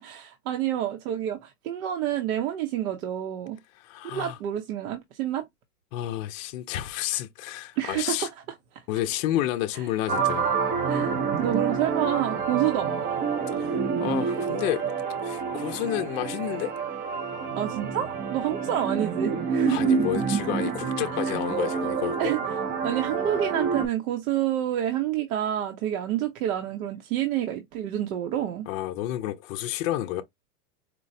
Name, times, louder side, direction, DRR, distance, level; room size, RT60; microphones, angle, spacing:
voice 1, 0.0-3.6 4.0-5.4 7.8-8.3 9.7-9.8 10.9-13.0 17.6-19.8 21.2-21.3 22.2-22.4 22.8-28.7, right 11 dB, 65° right, 0.8 m, -28 dB
voice 2, 3.8-4.4 5.9-8.3 8.9-10.5 13.5-14.8 15.2-16.7 19.7-22.3 28.7-30.2, left 13 dB, 55° left, 0.5 m, -30 dB
sound 1, 10.1-23.9, right 6 dB, 25° right, 0.5 m, -28 dB
4.5 x 2.1 x 2.6 m
hypercardioid pair, 130°, 47 cm